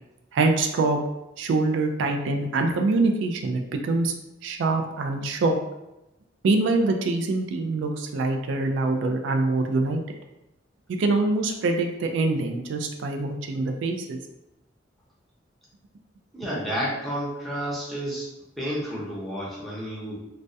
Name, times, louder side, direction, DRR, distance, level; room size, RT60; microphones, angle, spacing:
voice 1, 0.3-1.0 1.4-4.1 4.4-5.6 6.4-10.0 11.0-14.2, right 3 dB, 80° right, 4 dB, 0.3 m, -24 dB
voice 2, 16.3-18.3 18.6-20.2, equal, ahead, -6 dB, 0.6 m, -31 dB
2.2 x 2.1 x 2.6 m, 0.94 s
head